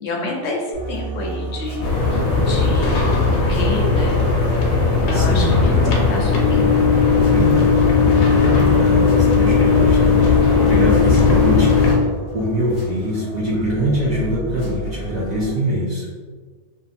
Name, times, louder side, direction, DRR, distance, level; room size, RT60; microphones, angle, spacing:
voice 1, 0.0-2.1 2.4-4.2 5.0-6.7, left 2 dB, 65° left, -2 dB, 0.8 m, -28 dB
sound 1, 0.7-15.5, right 2 dB, 40° right, 1.2 m, -33 dB
sound 2, 1.8-12.0, left 5 dB, 90° left, 1.1 m, -16 dB
voice 2, 5.1-5.6 7.3-10.3 10.6-11.7 12.3-16.1, equal, 90° right, -6 dB, 0.3 m, -23 dB
2.6 x 2.5 x 2.5 m, 1.5 s
omnidirectional pair, 1.4 m